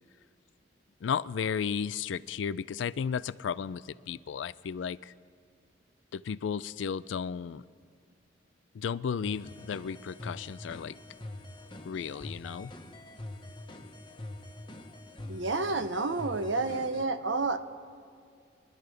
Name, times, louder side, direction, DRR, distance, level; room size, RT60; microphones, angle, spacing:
voice 1, 1.0-5.1 6.1-7.6 8.7-10.9 11.9-12.7, left 7 dB, 80° left, 18 dB, 0.4 m, -34 dB
sound 1, 9.2-17.0, left 1 dB, 25° left, 1.0 m, -44 dB
voice 2, 15.3-17.6, right 3 dB, 85° right, 10 dB, 0.8 m, -30 dB
24.5 x 12.0 x 3.4 m, 2.2 s
head